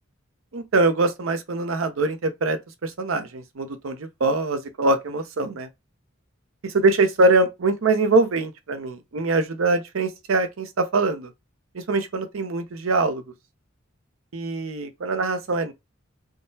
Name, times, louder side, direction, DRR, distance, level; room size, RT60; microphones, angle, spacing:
voice 1, 0.5-5.7 6.6-11.3 11.7-13.2 14.3-15.7, right 3 dB, 85° right, 0.6 m, -23 dB
3.6 x 2.0 x 2.7 m
head